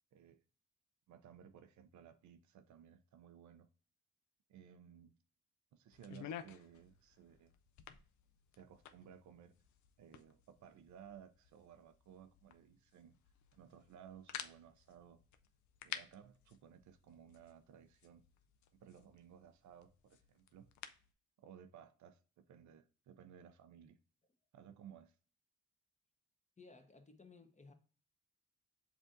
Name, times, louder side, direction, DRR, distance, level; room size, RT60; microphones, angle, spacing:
voice 1, 0.1-0.4 1.1-3.7 4.5-5.1 5.7-7.5 8.5-9.5 10.0-13.2 13.5-15.2 15.8-18.2 18.7-20.7 21.4-24.0 24.5-25.2, right 8 dB, 75° right, 0.5 m, -58 dB
sound 1, 5.9-21.1, left 9 dB, 80° left, 0.4 m, -54 dB
voice 2, 26.6-27.7, left 3 dB, 25° left, 0.9 m, -59 dB
7.2 x 2.6 x 2.5 m
cardioid pair, 60°, 29 cm